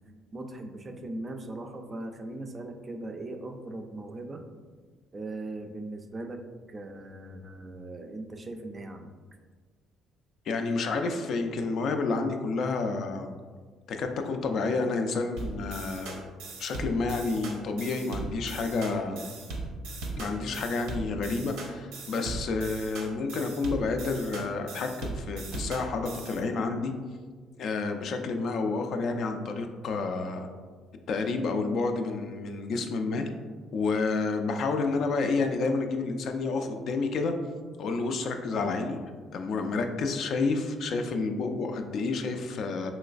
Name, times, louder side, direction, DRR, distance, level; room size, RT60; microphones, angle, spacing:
voice 1, 0.3-4.4 5.1-6.4 6.7-9.1, right 2 dB, 30° right, 5 dB, 0.3 m, -39 dB
voice 2, 10.5-13.3 13.9-16.2 16.6-19.3 20.2-26.9 27.6-30.5 31.1-33.3 33.7-37.3 37.8-39.0 39.3-42.9, left 3 dB, 60° left, 5 dB, 0.3 m, -29 dB
sound 1, 15.4-26.4, right 2 dB, 90° right, 0.6 m, -38 dB
3.0 x 3.0 x 2.4 m, 1.5 s
cardioid pair, 95°, 0 cm